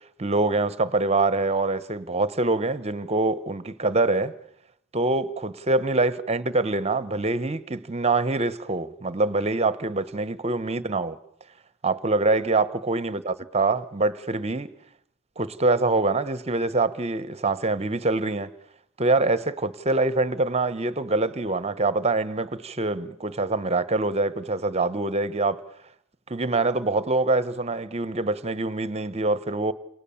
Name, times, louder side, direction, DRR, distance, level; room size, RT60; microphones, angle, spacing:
voice 1, 0.2-4.3 4.9-11.2 11.8-14.7 15.4-18.5 19.0-25.6 26.3-29.7, right 3 dB, 30° right, 1.1 m, -25 dB
29.5 x 27.5 x 7.1 m
head